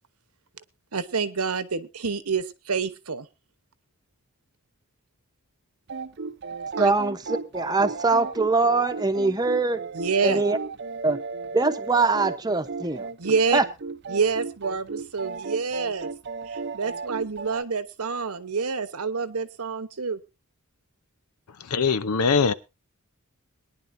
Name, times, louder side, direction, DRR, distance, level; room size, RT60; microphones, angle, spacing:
voice 1, 0.9-3.3 6.8-6.9 9.9-10.4 13.2-13.6 14.1-16.1 16.5-20.2, right 5 dB, 80° right, 1.1 m, -27 dB
sound 1, 5.9-17.6, right 4 dB, 50° right, 0.6 m, -35 dB
voice 2, 6.8-7.2 7.5-9.8 10.2-10.6 11.0-11.2 11.5-13.1 13.5-13.6, right 3 dB, 15° right, 0.9 m, -22 dB
voice 3, 21.7-22.5, left 5 dB, 85° left, 0.7 m, -21 dB
22.0 x 10.5 x 2.7 m
head